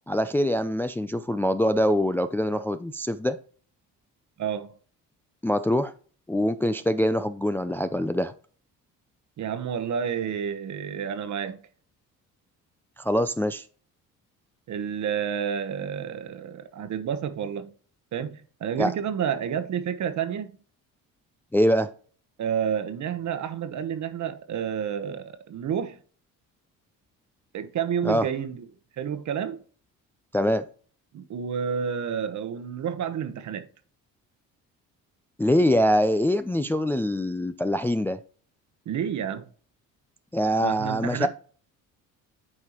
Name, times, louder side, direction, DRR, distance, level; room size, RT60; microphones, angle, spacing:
voice 1, 0.1-3.4 5.4-5.9 6.3-8.3 13.0-13.6 18.8-18.9 21.5-21.9 28.0-28.3 30.3-30.7 35.4-38.2 40.3-41.3, equal, 5° left, 0.3 m, -24 dB
voice 2, 4.4-4.7 9.4-11.6 14.7-17.7 18.1-20.5 22.4-26.0 27.5-28.6 29.0-29.6 31.1-33.7 38.9-39.5 40.6-41.3, right 8 dB, 55° right, 1.0 m, -30 dB
8.7 x 4.7 x 3.0 m
cardioid pair, 90°, 34 cm